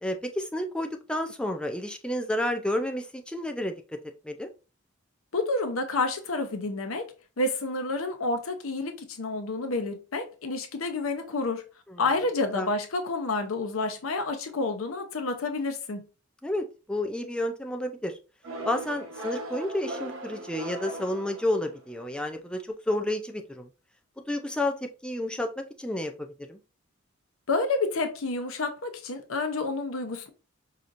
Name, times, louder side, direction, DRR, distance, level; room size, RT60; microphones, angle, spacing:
voice 1, 0.0-3.8 4.2-4.5 11.9-12.0 12.5-12.7 16.4-18.2 18.6-23.7 24.3-26.6, left 1 dB, 5° left, 0.3 m, -31 dB
voice 2, 5.3-11.6 12.0-16.0 27.5-30.3, left 3 dB, 80° left, 0.8 m, -29 dB
sound 1, 18.4-22.0, right 1 dB, 85° right, 1.1 m, -38 dB
4.9 x 2.8 x 2.5 m
head